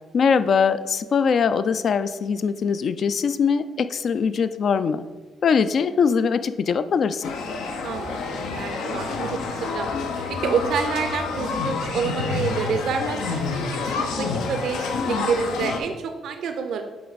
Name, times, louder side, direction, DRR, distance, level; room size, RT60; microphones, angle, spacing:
voice 1, 0.1-5.1 5.4-7.3, left 6 dB, 55° left, 12 dB, 0.3 m, -22 dB
sound 1, 7.2-15.8, left 4 dB, 85° left, 0.6 m, -28 dB
voice 2, 7.8-9.9 10.4-16.8, right 6 dB, 75° right, 7 dB, 0.5 m, -28 dB
7.7 x 3.5 x 4.0 m, 1.3 s
cardioid pair, 90°, 0 cm